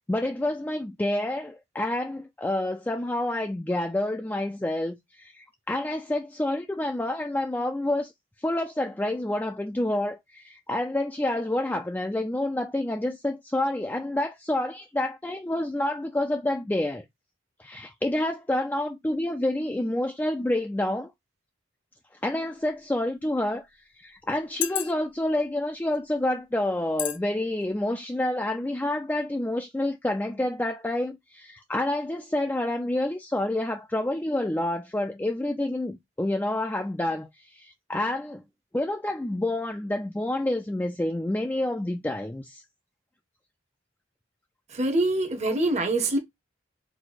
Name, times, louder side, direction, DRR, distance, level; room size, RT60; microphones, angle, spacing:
voice 1, 0.1-8.1 8.4-17.0 17.6-21.1 22.2-23.7 24.0-38.4 38.7-42.6, left 1 dB, 10° left, 0.3 m, -28 dB
sound 1, 22.5-22.7 23.4-23.5 24.4-25.2 25.9-26.1 27.0-27.2 27.6-27.8, left 13 dB, 75° left, 0.5 m, -31 dB
voice 2, 44.7-46.2, right 2 dB, 35° right, 0.8 m, -24 dB
4.7 x 2.1 x 3.9 m
head